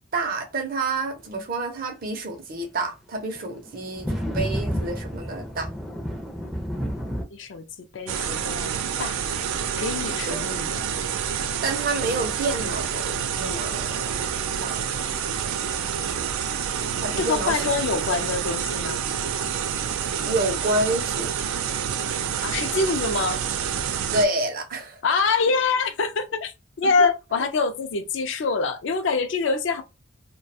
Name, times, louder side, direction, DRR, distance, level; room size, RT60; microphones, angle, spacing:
voice 1, 0.1-5.7 10.2-10.4 11.6-14.0 14.6-14.8 17.0-17.7 20.3-21.3 24.1-25.0 27.0-27.1, right 2 dB, 45° right, 0.6 m, -28 dB
sound 1, 3.3-3.4 3.7-7.2, equal, ahead, 0.4 m, -30 dB
voice 2, 7.3-7.7 7.9-9.2 9.8-10.8 17.2-19.1 22.4-23.4 25.0-29.8, left 4 dB, 60° left, 0.4 m, -25 dB
sound 2, 8.1-24.3, right 8 dB, 90° right, 0.3 m, -28 dB
2.3 x 2.2 x 2.6 m
head